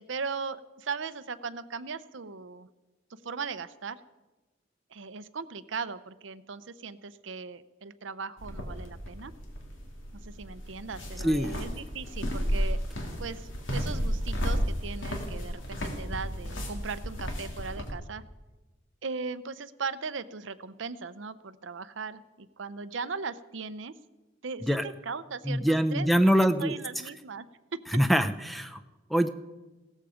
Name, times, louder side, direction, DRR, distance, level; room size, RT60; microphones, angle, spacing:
voice 1, 0.0-2.7 3.1-4.0 4.9-9.3 10.2-12.8 13.2-18.2 19.0-24.0 24.4-27.5 27.7-28.0, right 5 dB, 80° right, 13 dB, 0.7 m, -38 dB
sound 1, 8.4-17.9, equal, 90° left, 2.8 m, -33 dB
voice 2, 11.2-11.6 24.7-24.8 25.5-26.7 27.9-28.8 29.1-29.3, equal, ahead, 10 dB, 0.6 m, -24 dB
17.0 x 14.0 x 5.1 m, 1.1 s
head